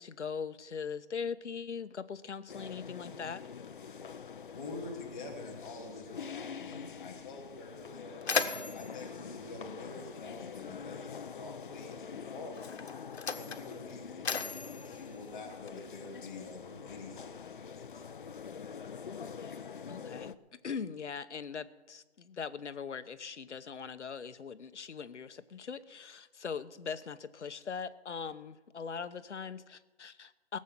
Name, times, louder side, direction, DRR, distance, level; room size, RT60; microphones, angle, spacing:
voice 1, 0.0-3.5 19.4-20.3 20.6-30.6, left 6 dB, 90° left, 12 dB, 0.9 m, -41 dB
sound 1, 2.5-20.3, left 6 dB, 50° left, 0.6 m, -45 dB
voice 2, 4.5-8.2 8.7-12.7 13.3-18.0, left 3 dB, 5° left, -5 dB, 0.7 m, -47 dB
Mechanisms, 7.3-7.4 7.8-10.5 11.5-11.6 12.5-16.0, left 5 dB, 70° left, 1.2 m, -38 dB
17.0 x 7.4 x 7.4 m, 1.2 s
hypercardioid pair, 165°, 34 cm